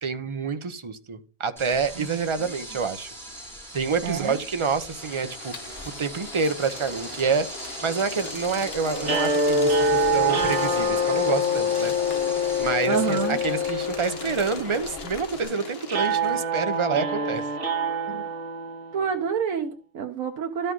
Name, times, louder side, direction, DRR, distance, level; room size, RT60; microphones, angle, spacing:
voice 1, 0.0-3.1 3.7-5.5 6.0-11.9 12.6-17.5 18.1-18.2, right 5 dB, 30° right, 0.6 m, -27 dB
sound 1, 1.6-15.4, right 1 dB, ahead, 5.7 m, -40 dB
voice 2, 2.0-2.3 4.0-4.4 12.9-13.4 18.9-20.7, right 7 dB, 90° right, 1.3 m, -28 dB
sound 2, 4.8-16.4, left 4 dB, 50° left, 1.5 m, -39 dB
sound 3, 9.0-19.2, left 1 dB, 60° right, 2.1 m, -26 dB
12.5 x 5.6 x 3.8 m
omnidirectional pair, 1.4 m